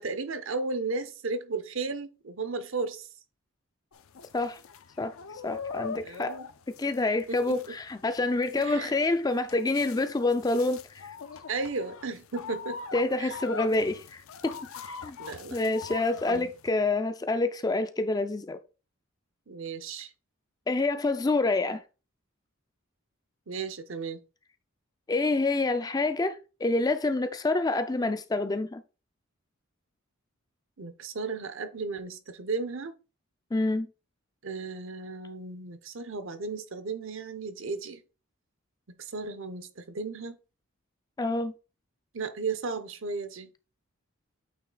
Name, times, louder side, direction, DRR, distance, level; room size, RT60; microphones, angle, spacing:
voice 1, 0.0-3.1 6.0-6.5 7.3-7.8 8.6-8.9 11.5-12.8 13.2-13.4 15.2-15.6 16.3-16.5 19.5-20.1 23.5-24.2 30.8-32.9 34.4-38.0 38.9-40.4 42.1-43.5, right 4 dB, 65° right, 0.8 m, -35 dB
sound 1, 3.9-16.7, left 5 dB, 75° left, 0.6 m, -43 dB
voice 2, 5.4-6.4 6.8-11.1 12.9-15.2 15.5-18.6 20.7-21.8 25.1-28.8 33.5-33.9 41.2-41.5, left 2 dB, 15° left, 0.4 m, -27 dB
8.7 x 3.2 x 3.8 m
head